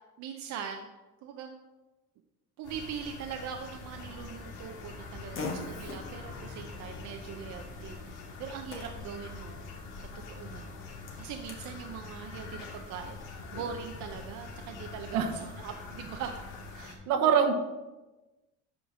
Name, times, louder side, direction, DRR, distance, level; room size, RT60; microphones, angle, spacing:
voice 1, 0.2-0.9 1.2-1.6 2.6-9.7 10.0-10.7 11.2-16.3 16.7-17.5, right 7 dB, 65° right, 4 dB, 0.7 m, -42 dB
sound 1, 2.6-17.0, left 3 dB, 85° left, 2.1 m, -44 dB
Fart, 4.0-11.7, left 3 dB, 45° left, 1.7 m, -46 dB
voice 2, 17.1-17.5, right 7 dB, 80° right, 5 dB, 1.2 m, -23 dB
8.5 x 3.9 x 6.0 m, 1.1 s
cardioid pair, 120°, 30 cm